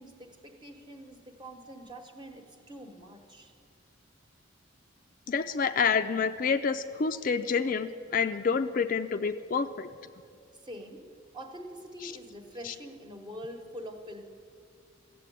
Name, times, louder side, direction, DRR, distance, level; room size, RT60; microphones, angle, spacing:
voice 1, 0.0-3.5 10.5-11.1 11.3-14.3, equal, 20° right, 5 dB, 1.1 m, -45 dB
voice 2, 5.3-9.9 12.0-12.1 12.6-12.7, left 5 dB, 40° left, 9 dB, 0.4 m, -28 dB
14.5 x 7.5 x 9.9 m, 2.3 s
head